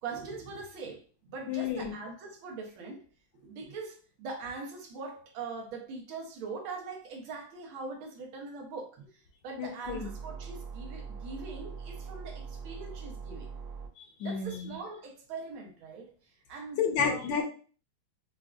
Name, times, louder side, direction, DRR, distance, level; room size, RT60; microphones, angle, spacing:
voice 1, 0.0-3.0 3.4-13.5 14.2-16.1 16.5-17.2, right 4 dB, 80° right, 1.6 m, -42 dB
voice 2, 1.5-2.0 9.6-10.1 14.0-14.7 16.8-17.4, left 6 dB, 70° left, 1.5 m, -31 dB
sound 1, 9.8-13.9, right 5 dB, 35° right, 0.6 m, -42 dB
5.2 x 2.3 x 2.3 m
omnidirectional pair, 2.2 m